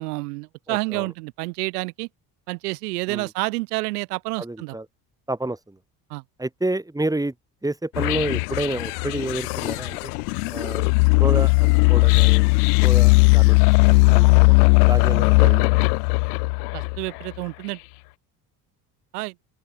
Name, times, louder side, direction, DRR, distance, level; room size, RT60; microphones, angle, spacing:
voice 1, 0.0-2.1 2.5-4.7 6.1-6.2 16.7-17.8 19.1-19.3, right 24 dB, 85° right, 4.7 m, -29 dB
voice 2, 0.7-1.1 3.1-3.3 4.4-4.9 5.3-5.8 6.4-7.3 7.6-10.1 10.5-10.8 11.2-12.4 12.8-13.6 14.1-15.8, right 2 dB, 10° right, 3.0 m, -29 dB
sound 1, 7.9-17.2, left 29 dB, 80° left, 1.8 m, -18 dB
open air
hypercardioid pair, 65°, 45 cm